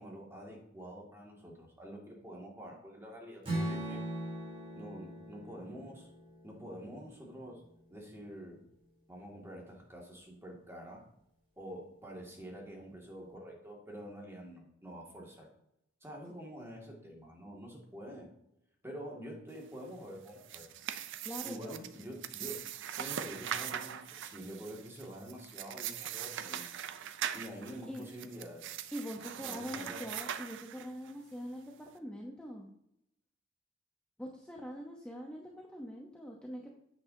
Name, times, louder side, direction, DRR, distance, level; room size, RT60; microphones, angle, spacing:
voice 1, 0.0-4.0 4.7-6.1 6.4-7.6 7.9-8.6 9.1-11.0 11.6-15.5 16.0-18.3 18.8-20.7 21.4-22.6 23.0-26.7 27.3-28.7 29.4-30.0, equal, 10° right, -1 dB, 2.1 m, -47 dB
Strum, 3.4-7.6, right 1 dB, 30° right, 3.6 m, -40 dB
sound 1, 20.2-31.1, right 10 dB, 60° right, 0.5 m, -41 dB
voice 2, 21.2-21.8 27.9-28.1 28.9-32.7 34.2-36.7, equal, 5° left, -1 dB, 0.9 m, -43 dB
9.5 x 8.4 x 2.8 m, 0.78 s
head